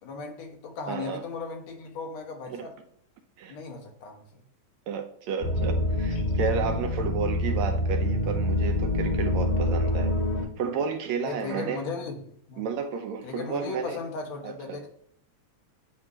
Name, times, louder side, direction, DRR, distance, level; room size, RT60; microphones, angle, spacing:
voice 1, 0.0-2.8 3.5-4.2 6.2-6.3 11.2-12.2 12.5-12.7 13.2-14.9, left 4 dB, 65° left, 2.2 m, -36 dB
voice 2, 0.9-1.2 2.5-2.7 3.4-3.6 4.9-10.1 10.6-11.8 12.6-14.0 14.4-14.8, right 6 dB, 75° right, 1.8 m, -32 dB
sound 1, 5.4-10.4, left 1 dB, 35° left, 3.3 m, -26 dB
10.0 x 3.6 x 2.9 m
omnidirectional pair, 3.5 m